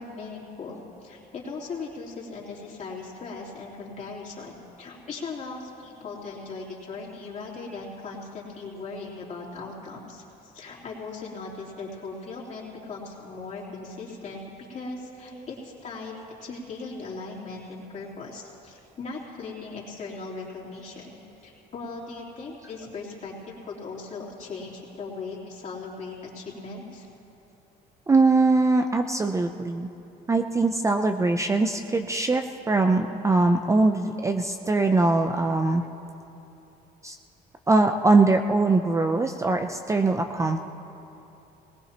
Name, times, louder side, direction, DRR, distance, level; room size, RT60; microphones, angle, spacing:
voice 1, 0.0-16.1 16.4-27.1, left 3 dB, 45° left, -5 dB, 3.3 m, -38 dB
voice 2, 28.1-29.9 30.3-35.8 37.0-37.2 37.7-40.6, right 3 dB, 20° right, 6 dB, 0.5 m, -22 dB
19.5 x 18.0 x 3.0 m, 2.9 s
cardioid pair, 110°, 17 cm